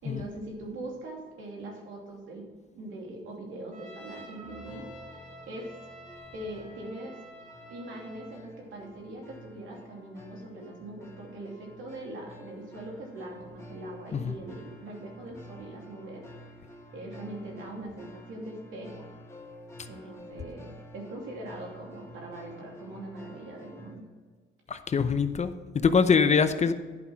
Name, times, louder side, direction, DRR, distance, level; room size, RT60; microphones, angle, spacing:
voice 1, 0.0-2.5 2.7-4.9 5.5-5.7 6.3-7.1 7.7-16.2 16.9-19.1 19.9-24.0, right 1 dB, 80° right, -1 dB, 2.8 m, -41 dB
Trumpet, 3.7-8.4, right 1 dB, 40° right, 2.0 m, -49 dB
sound 1, 4.3-24.0, left 1 dB, 15° left, 2.0 m, -50 dB
voice 2, 24.7-26.7, left 5 dB, 35° left, 11 dB, 0.7 m, -24 dB
11.0 x 5.5 x 5.9 m, 1.5 s
cardioid pair, 90°, 20 cm